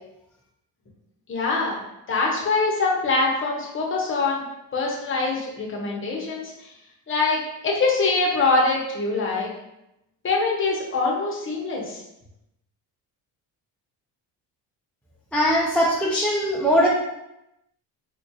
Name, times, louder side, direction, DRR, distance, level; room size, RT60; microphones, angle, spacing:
voice 1, 1.3-4.4 4.7-6.5 7.1-9.5 10.2-12.0, left 3 dB, 30° left, -2 dB, 0.8 m, -24 dB
voice 2, 15.3-16.9, equal, 5° left, -5 dB, 0.4 m, -20 dB
3.8 x 2.4 x 2.7 m, 0.86 s
cardioid pair, 125°, 40 cm